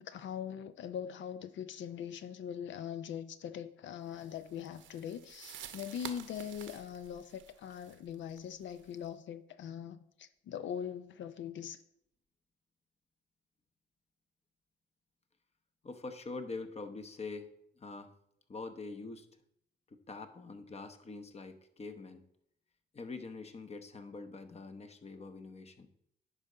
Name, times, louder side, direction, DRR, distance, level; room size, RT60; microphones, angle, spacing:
voice 1, 0.0-11.8, left 8 dB, 70° left, 12 dB, 0.5 m, -42 dB
sound 1, 4.2-9.1, right 10 dB, 75° right, 0.8 m, -50 dB
voice 2, 15.8-18.1 18.5-19.3 19.9-22.2 22.9-25.9, left 3 dB, 30° left, 8 dB, 0.9 m, -44 dB
9.9 x 3.9 x 5.5 m, 0.72 s
cardioid pair, 90°, 20 cm